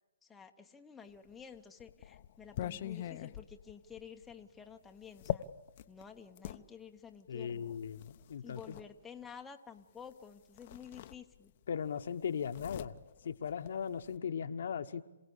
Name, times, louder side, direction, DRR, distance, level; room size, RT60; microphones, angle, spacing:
voice 1, 0.2-5.5 5.9-7.7 8.4-11.5, left 7 dB, 5° left, 3 dB, 0.9 m, -51 dB
sound 1, 1.3-6.6 7.5-8.9 10.1-10.2 10.5-11.7 11.9-14.2, left 12 dB, 40° left, 0.8 m, -43 dB
voice 2, 7.3-8.8 11.7-13.0 13.2-15.0, left 7 dB, 60° left, 8 dB, 1.1 m, -38 dB
27.5 x 16.5 x 8.5 m, 1.1 s
hypercardioid pair, 145°, 0 cm